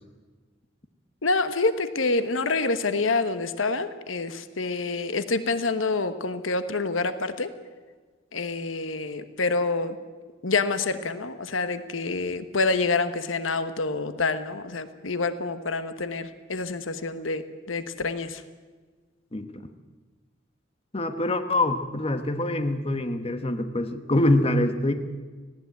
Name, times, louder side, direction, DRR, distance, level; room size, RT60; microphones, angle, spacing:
voice 1, 1.2-7.5 8.3-10.0 10.4-17.4 17.7-18.4, left 3 dB, 80° left, 11 dB, 1.2 m, -27 dB
voice 2, 19.3-19.7 20.9-24.9, left 1 dB, 30° left, 8 dB, 1.3 m, -25 dB
18.5 x 16.5 x 9.4 m, 1.4 s
head